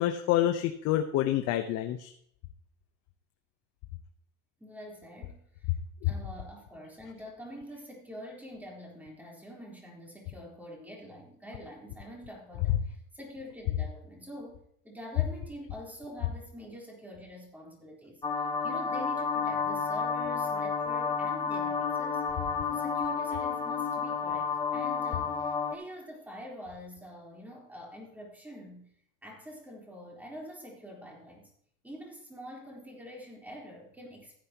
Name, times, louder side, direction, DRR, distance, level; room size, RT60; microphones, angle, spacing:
voice 1, 0.0-2.1 6.0-6.1, left 12 dB, 55° left, 6 dB, 0.9 m, -27 dB
voice 2, 4.6-5.7 6.0-22.3 22.7-28.9 29.2-31.5 31.8-34.3, equal, 5° right, -2 dB, 3.7 m, -45 dB
sound 1, 18.2-25.8, left 5 dB, 15° left, 1.1 m, -31 dB
15.0 x 9.5 x 2.9 m, 0.66 s
cardioid pair, 135°, 31 cm